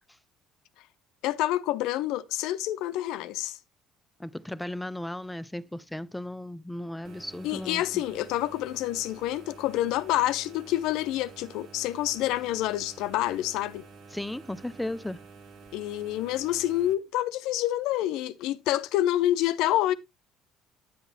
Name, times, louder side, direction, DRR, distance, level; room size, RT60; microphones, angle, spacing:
voice 1, 1.2-3.6 7.4-13.8 15.7-19.9, left 14 dB, 70° left, 0.6 m, -28 dB
voice 2, 4.2-8.0 14.1-15.2, left 1 dB, 5° left, 0.6 m, -36 dB
sound 1, 7.0-16.9, right 4 dB, 60° right, 1.3 m, -50 dB
9.3 x 8.0 x 2.7 m
hypercardioid pair, 65°, 0 cm